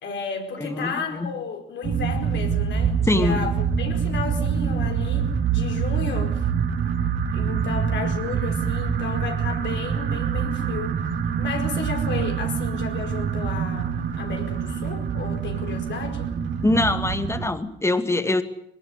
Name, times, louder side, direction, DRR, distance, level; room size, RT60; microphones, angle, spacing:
voice 1, 0.0-6.4 7.3-11.0 11.4-16.3, left 5 dB, 65° left, 4.9 m, -33 dB
voice 2, 0.6-1.3 3.1-3.5 16.6-18.4, left 2 dB, 15° left, 2.2 m, -23 dB
sound 1, 1.8-17.5, right 7 dB, 70° right, 4.5 m, -25 dB
22.5 x 18.5 x 9.8 m
cardioid pair, 90°, 20 cm